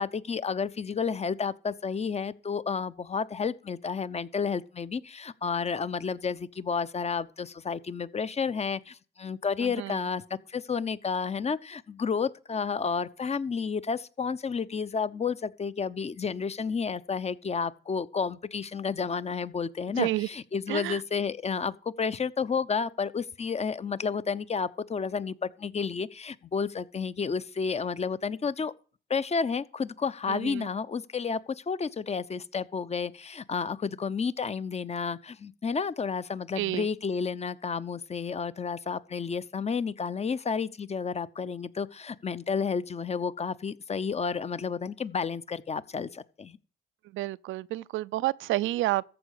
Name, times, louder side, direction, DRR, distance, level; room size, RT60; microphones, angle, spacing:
voice 1, 0.0-28.7 29.1-46.6, left 5 dB, 35° left, 0.8 m, -31 dB
voice 2, 9.6-10.0 20.0-20.3 20.7-21.0 30.3-30.7 36.6-36.9 47.1-49.0, right 17 dB, 85° right, 0.5 m, -30 dB
14.0 x 4.8 x 8.3 m
cardioid pair, 90°, 20 cm